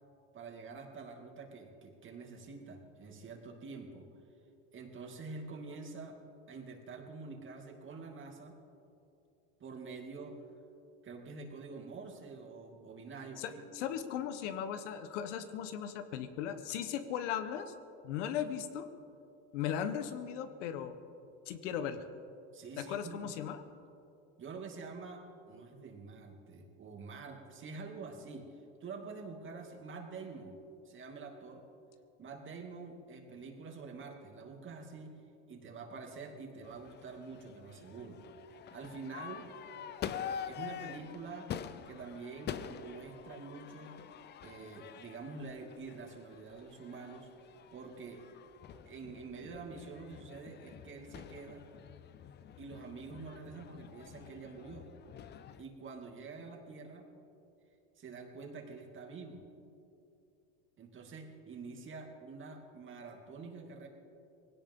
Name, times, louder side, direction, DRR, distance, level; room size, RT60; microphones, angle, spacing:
voice 1, 0.3-4.1 4.7-6.2 6.5-8.6 9.6-10.4 11.0-13.6 22.5-23.3 24.4-28.5 28.8-31.6 32.2-35.2 35.5-38.2 38.5-39.5 40.5-41.5 41.9-44.0 44.4-47.3 47.7-48.2 48.9-51.7 52.6-54.9 55.6-57.1 58.0-59.4 60.8-63.9, right 4 dB, 35° right, 2 dB, 2.5 m, -47 dB
voice 2, 13.4-17.7 18.0-18.9 19.5-21.0 21.5-22.1 22.8-23.6, left 9 dB, 80° left, 10 dB, 1.2 m, -37 dB
Crowd / Fireworks, 36.6-55.6, left 8 dB, 30° left, 0.6 m, -47 dB
20.0 x 17.0 x 3.7 m, 2.6 s
supercardioid pair, 115°, 36 cm